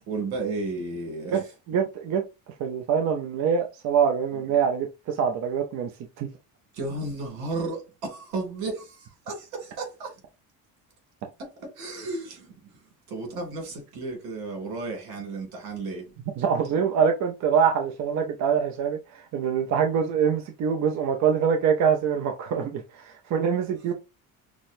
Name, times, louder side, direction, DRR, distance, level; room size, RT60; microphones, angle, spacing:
voice 1, 0.1-1.4 4.3-4.4 6.7-10.1 11.6-12.6 13.1-16.0 16.6-16.7, right 3 dB, 85° right, 2.3 m, -33 dB
voice 2, 1.3-2.2 2.6-5.9 6.2-6.3 16.4-23.9, right 7 dB, 50° right, 0.6 m, -24 dB
6.1 x 2.1 x 2.5 m
cardioid pair, 160°, 35 cm